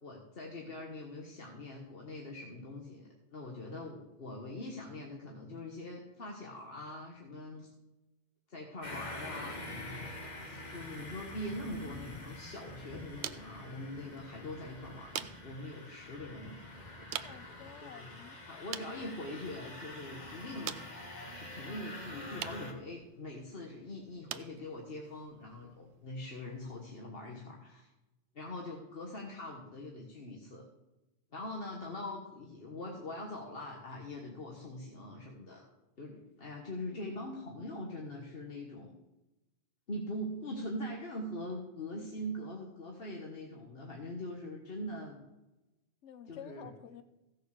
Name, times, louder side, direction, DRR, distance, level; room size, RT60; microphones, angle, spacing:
voice 1, 0.0-7.7 8.5-10.1 10.5-16.5 17.8-18.2 18.5-20.8 21.4-27.9 28.3-30.7 31.3-35.6 36.0-38.9 39.9-45.2 46.3-46.7, left 1 dB, 55° left, 0 dB, 1.6 m, -43 dB
sound 1, 8.8-22.7, left 1 dB, 40° left, 1.7 m, -46 dB
voice 2, 11.7-12.1 17.2-18.7 36.9-37.0 41.9-42.1 46.0-47.0, left 8 dB, 85° left, 12 dB, 1.1 m, -51 dB
sound 2, 12.0-27.0, right 10 dB, 70° right, 0.9 m, -48 dB
15.5 x 6.5 x 6.7 m, 1.0 s
omnidirectional pair, 1.2 m